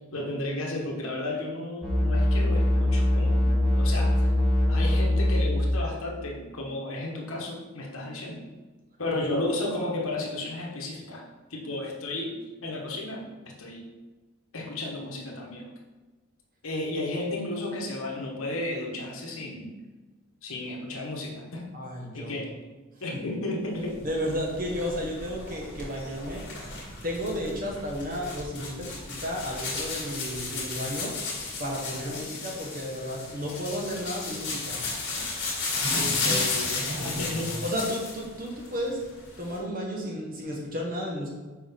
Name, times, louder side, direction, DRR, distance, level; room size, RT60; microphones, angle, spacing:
voice 1, 0.1-3.4 3.7-4.1 4.7-8.4 9.0-11.2 11.5-12.4 12.6-13.2 13.6-13.8 14.5-15.7 16.6-19.7 20.4-21.7 22.1-22.7 23.0-24.0 31.9-32.2 35.9-37.5, left 2 dB, 75° left, -1 dB, 1.2 m, -33 dB
sound 1, 1.8-5.9, left 1 dB, 5° right, 0.9 m, -23 dB
voice 2, 21.7-22.4 23.1-23.2 24.0-26.5 27.0-31.2 31.6-34.8 36.9-37.1 37.6-39.1 39.4-41.3, equal, 40° right, -1 dB, 1.3 m, -33 dB
sound 2, 23.9-38.2 38.6-39.6, left 3 dB, 55° left, 2.0 m, -33 dB
6.3 x 4.8 x 3.6 m, 1.3 s
head